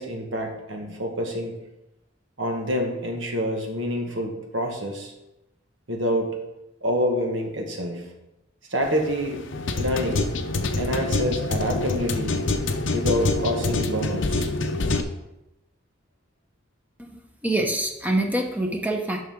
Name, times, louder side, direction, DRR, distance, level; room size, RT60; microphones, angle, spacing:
voice 1, 0.0-1.5 2.4-5.1 5.9-6.4 6.8-8.0 8.7-9.4 9.8-10.3 10.8-12.5 12.9-14.5, equal, 70° right, 2 dB, 1.6 m, -27 dB
sound 1, 8.8-15.0, left 2 dB, 70° left, 0.7 m, -26 dB
voice 2, 17.0-19.2, right 1 dB, 10° right, 2 dB, 0.8 m, -26 dB
10.0 x 6.1 x 3.7 m, 0.92 s
head